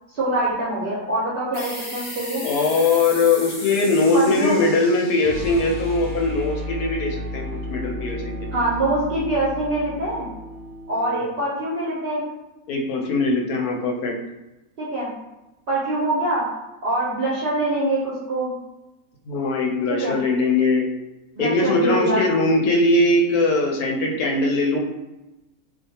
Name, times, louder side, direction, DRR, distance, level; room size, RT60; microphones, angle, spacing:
voice 1, 0.1-2.4 4.1-4.7 8.5-10.3 10.9-12.2 14.8-15.1 15.7-16.4 16.8-18.5 19.9-20.2 21.4-22.2, right 1 dB, 55° right, -7 dB, 0.6 m, -24 dB
sound 1, 1.5-6.8, left 1 dB, 45° left, 0.4 m, -36 dB
voice 2, 2.4-8.6 12.7-14.1 19.3-20.9 21.4-24.8, left 2 dB, 80° left, 1 dB, 1.1 m, -21 dB
sound 2, 5.2-11.2, equal, 10° right, 0.7 m, -33 dB
2.5 x 2.3 x 2.7 m, 0.99 s
omnidirectional pair, 1.6 m